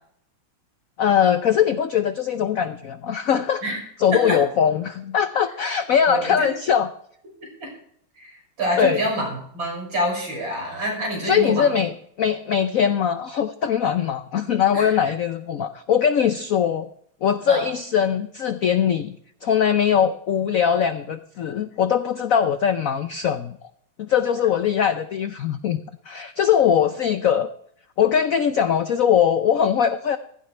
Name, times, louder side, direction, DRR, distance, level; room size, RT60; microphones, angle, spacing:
voice 1, 1.0-3.6 4.0-6.9 8.8-9.0 11.2-16.9 17.2-19.1 19.4-23.6 24.0-25.8 26.1-27.5 28.0-30.2, left 8 dB, 75° left, 11 dB, 0.7 m, -21 dB
voice 2, 6.1-6.5 7.4-7.7 8.2-8.3 8.6-9.3 9.5-11.7 14.7-15.0 17.5-17.7, right 1 dB, 65° right, -1 dB, 7.1 m, -26 dB
16.0 x 15.5 x 3.3 m, 0.65 s
omnidirectional pair, 2.3 m